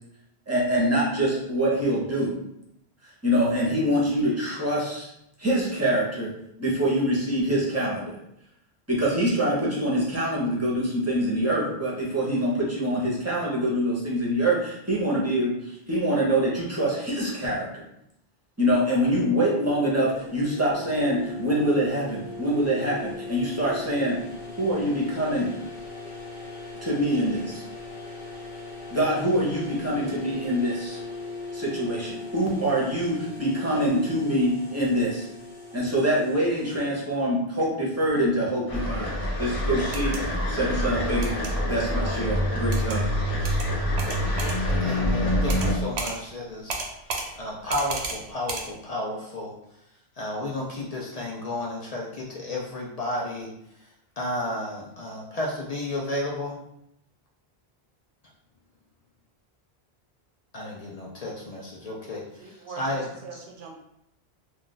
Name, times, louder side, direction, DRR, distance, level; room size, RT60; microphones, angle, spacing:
voice 1, 0.5-2.3 3.2-5.1 5.4-6.3 6.6-8.2 8.9-17.8 18.6-24.2 24.6-25.5 26.8-27.6 28.9-31.0 31.5-35.3 35.7-39.1 39.4-41.4 41.6-43.1, equal, 15° right, -5 dB, 0.7 m, -25 dB
sound 1, 19.0-36.8, left 3 dB, 75° left, 1.1 m, -39 dB
sound 2, 38.7-45.7, equal, 35° left, 0.8 m, -26 dB
sound 3, 39.8-40.2 41.2-41.5 42.7-43.0 43.4-43.7 44.0-44.6 45.5-45.7 46.0-46.1 46.7-47.3 47.7-48.2 48.5-48.6, right 3 dB, 90° right, 0.9 m, -32 dB
voice 2, 44.8-46.8 47.4-49.5 50.2-53.5 54.2-56.6 60.5-63.4, left 1 dB, 55° left, -2 dB, 0.4 m, -32 dB
voice 3, 62.4-63.7, right 5 dB, 60° right, 1 dB, 0.7 m, -42 dB
2.4 x 2.3 x 3.7 m, 0.78 s
omnidirectional pair, 1.1 m